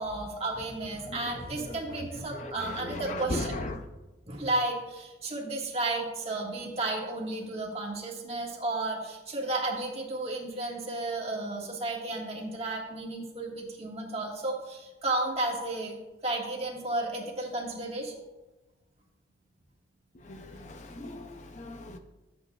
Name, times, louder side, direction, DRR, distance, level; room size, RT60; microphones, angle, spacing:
voice 1, 0.0-3.5 4.2-18.1 21.0-21.2, right 2 dB, 30° right, 1.6 m, -33 dB
voice 2, 1.1-2.1 2.3-3.8 20.1-22.0, left 2 dB, 40° left, 0.5 m, -38 dB
12.0 x 8.1 x 2.3 m
head